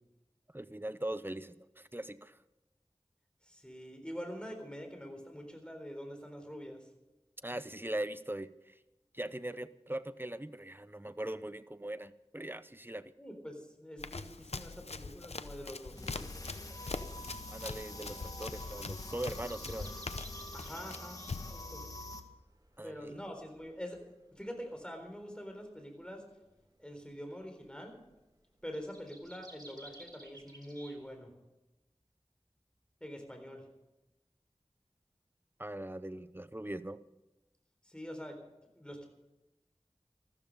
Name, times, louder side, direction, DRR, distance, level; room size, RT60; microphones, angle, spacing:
voice 1, 0.5-2.4 7.4-8.8 9.1-13.1 17.5-20.0 22.8-23.2 35.6-37.0, right 1 dB, 20° right, 14 dB, 0.7 m, -40 dB
voice 2, 3.4-6.9 13.2-16.3 20.5-21.2 21.5-21.8 22.8-24.0 24.3-26.2 26.8-28.0 28.6-31.3 33.0-33.7 37.8-38.4 38.7-39.1, equal, 10° left, 4 dB, 3.9 m, -45 dB
Run, 14.0-21.6, left 3 dB, 80° left, 0.7 m, -43 dB
sound 1, 15.9-22.2, left 1 dB, 35° left, 1.7 m, -46 dB
sound 2, 16.7-31.2, right 1 dB, 40° right, 2.8 m, -59 dB
14.5 x 14.0 x 5.4 m, 1.0 s
wide cardioid pair, 40°, 11 cm